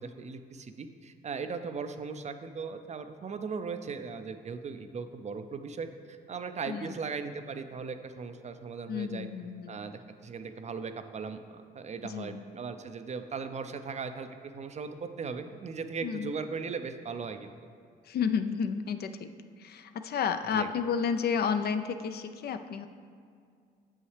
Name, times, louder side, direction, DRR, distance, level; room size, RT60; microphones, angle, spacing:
voice 1, 0.0-9.3 9.7-17.5 20.5-20.7, right 5 dB, 35° right, 9 dB, 0.4 m, -38 dB
voice 2, 6.7-7.0 8.9-9.8 12.0-12.4 16.0-16.3 18.0-19.3 19.6-22.9, left 6 dB, 50° left, 9 dB, 0.4 m, -31 dB
7.0 x 5.5 x 3.3 m, 2.3 s
supercardioid pair, 60°, 21 cm